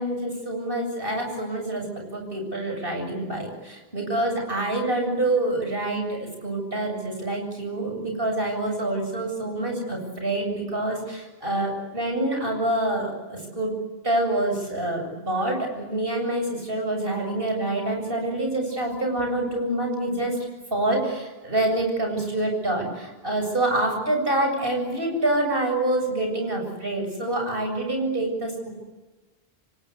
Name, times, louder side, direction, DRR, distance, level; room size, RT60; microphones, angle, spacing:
voice 1, 0.0-1.9 2.1-13.7 14.0-20.4 20.7-28.7, right 1 dB, 65° right, 2 dB, 7.9 m, -26 dB
28.5 x 25.0 x 8.4 m, 1.2 s
omnidirectional pair, 1.0 m